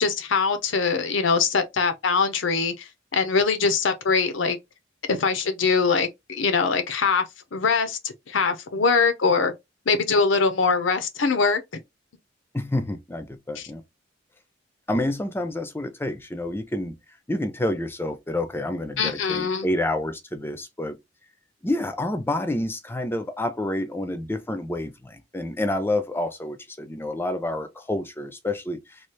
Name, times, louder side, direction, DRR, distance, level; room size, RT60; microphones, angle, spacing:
voice 1, 0.0-4.6 5.1-7.2 7.5-8.0 8.3-9.5 9.9-11.6 13.6-13.7 19.0-19.7, left 5 dB, 90° left, 0.7 m, -22 dB
voice 2, 12.5-13.8 14.9-17.0 17.3-21.0 21.6-28.8, left 1 dB, 10° left, 0.4 m, -28 dB
3.1 x 2.4 x 3.2 m
head